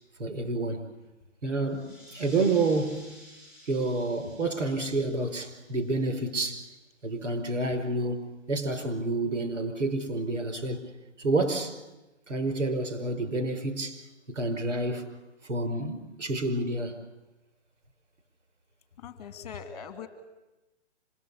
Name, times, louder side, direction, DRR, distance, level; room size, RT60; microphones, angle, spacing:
voice 1, 0.2-0.9 1.4-3.2 3.7-6.7 7.0-10.8 11.2-11.8 12.3-14.0 14.3-15.1 15.4-17.0, right 2 dB, 85° right, 7 dB, 5.2 m, -29 dB
sound 1, 1.6-6.9, equal, 10° right, 7.9 m, -53 dB
voice 2, 19.0-20.1, left 7 dB, 30° left, 9 dB, 2.2 m, -41 dB
26.0 x 20.0 x 8.5 m, 1.0 s
hypercardioid pair, 170°, 36 cm